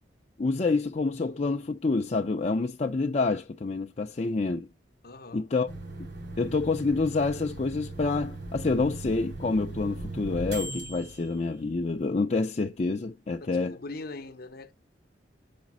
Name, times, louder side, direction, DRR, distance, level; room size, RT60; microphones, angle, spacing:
voice 1, 0.4-4.7 5.3-5.7 6.4-13.8, left 3 dB, 40° left, 0.5 m, -27 dB
voice 2, 5.0-5.5 13.4-14.7, left 2 dB, 60° left, 0.9 m, -41 dB
sound 1, 5.7-12.1, right 2 dB, 75° right, 2.8 m, -39 dB
5.1 x 4.9 x 6.0 m
head